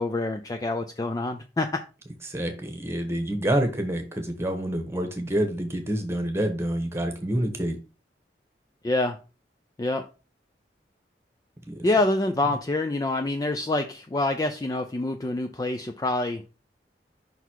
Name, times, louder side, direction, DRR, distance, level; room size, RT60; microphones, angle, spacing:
voice 1, 0.0-1.8 8.8-9.2 9.8-10.0 11.8-16.4, left 2 dB, 20° left, 6 dB, 0.4 m, -26 dB
voice 2, 2.2-7.7 11.7-11.9, right 1 dB, 15° right, 5 dB, 1.2 m, -27 dB
5.5 x 4.1 x 4.5 m, 0.32 s
head